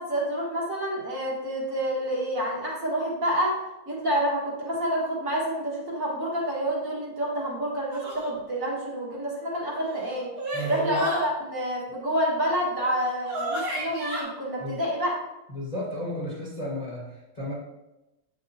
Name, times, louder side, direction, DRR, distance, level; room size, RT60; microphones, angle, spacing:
voice 1, 0.0-3.6 3.9-10.3 10.7-15.1, equal, 40° right, -6 dB, 2.2 m, -28 dB
sound 1, 7.9-8.3 9.7-11.3 12.8-12.9 13.2-14.2, right 1 dB, 75° right, 2.9 m, -32 dB
voice 2, 10.5-11.0 14.6-14.8 15.5-17.5, equal, 20° left, -5 dB, 1.5 m, -33 dB
7.9 x 6.3 x 2.9 m, 0.95 s
omnidirectional pair, 2.2 m